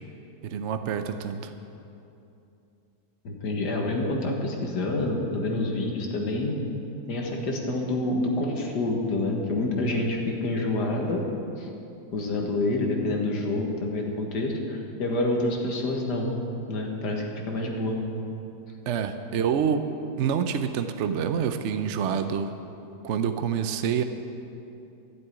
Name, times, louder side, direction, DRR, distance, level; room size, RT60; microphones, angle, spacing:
voice 1, 0.4-1.5 18.9-19.9 20.2-22.5 23.0-24.0, right 7 dB, 60° right, 8 dB, 0.7 m, -27 dB
voice 2, 3.2-6.6 7.1-11.2 11.6-11.7 12.1-16.3 16.7-18.0, left 2 dB, 80° left, 1 dB, 2.2 m, -27 dB
12.5 x 7.6 x 9.7 m, 2.7 s
omnidirectional pair, 1.8 m